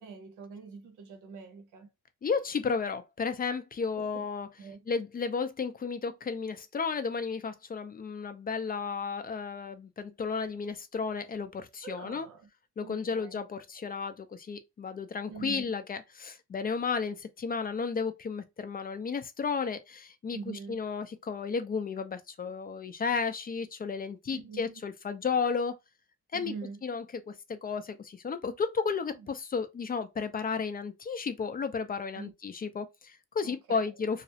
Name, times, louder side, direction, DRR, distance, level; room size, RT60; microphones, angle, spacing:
voice 1, 0.0-1.9 4.0-4.3 4.6-4.8 11.8-12.5 12.8-13.4 15.3-15.7 20.3-20.8 24.3-24.8 26.3-26.8 32.2-32.3 33.4-33.9, right 5 dB, 90° right, 0.7 m, -44 dB
voice 2, 2.2-4.5 4.9-12.3 12.8-25.7 26.3-26.5 26.8-34.2, left 5 dB, 30° left, 0.4 m, -33 dB
2.3 x 2.0 x 2.7 m
cardioid pair, 90°, 30 cm